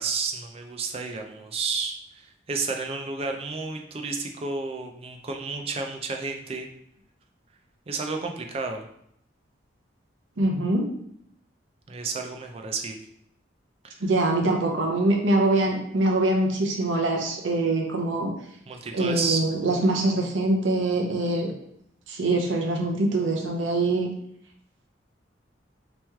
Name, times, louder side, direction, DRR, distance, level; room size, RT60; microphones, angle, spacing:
voice 1, 0.0-6.7 7.9-8.9 11.9-13.0 13.8-14.0 18.7-19.4, right 4 dB, 30° right, 4 dB, 0.4 m, -31 dB
voice 2, 10.4-10.8 14.0-18.3 18.9-21.5 22.1-24.1, right 2 dB, 85° right, 1 dB, 0.7 m, -24 dB
3.0 x 3.0 x 3.4 m, 0.71 s
head